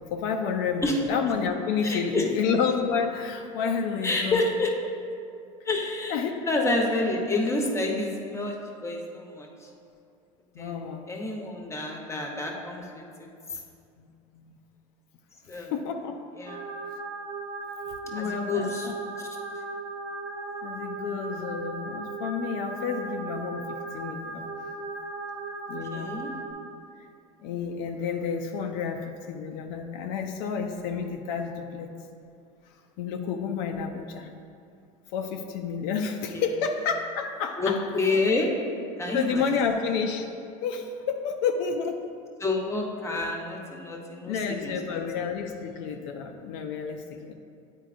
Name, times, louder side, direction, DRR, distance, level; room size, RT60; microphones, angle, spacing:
voice 1, 0.1-4.5 6.1-7.1 10.5-11.0 14.0-14.6 15.5-16.2 18.0-19.0 20.6-24.5 25.7-26.2 27.4-31.9 33.0-34.3 35.1-37.9 39.1-40.3 40.6-42.1 44.3-47.3, left 6 dB, 60° left, 4 dB, 0.5 m, -30 dB
voice 2, 1.8-2.3 4.0-4.7 5.6-6.2 6.5-8.6 8.8-9.7 10.6-13.6 15.5-15.7 16.4-16.6 18.1-18.9 19.2-19.3 25.9-26.3 36.3-36.4 37.6-38.5 39.0-39.4 42.4-45.0, left 2 dB, 15° left, 0 dB, 1.0 m, -29 dB
sound 1, 16.4-26.5, right 3 dB, 70° right, 1.0 m, -37 dB
9.0 x 4.5 x 2.5 m, 2.4 s
hypercardioid pair, 95°, 17 cm